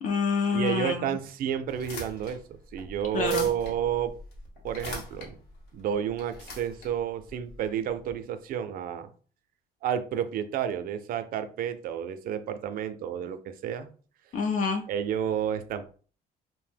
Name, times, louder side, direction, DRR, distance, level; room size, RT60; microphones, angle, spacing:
voice 1, 0.0-1.2 3.1-3.5 14.3-14.8, left 5 dB, 50° left, 3 dB, 0.4 m, -27 dB
voice 2, 0.5-4.1 4.6-5.4 5.7-9.1 9.8-13.9 14.9-15.9, right 9 dB, 60° right, 10 dB, 0.4 m, -30 dB
sound 1, 1.6-8.1, left 2 dB, 80° left, 1.1 m, -42 dB
2.6 x 2.0 x 3.3 m, 0.41 s
cardioid pair, 110°, 17 cm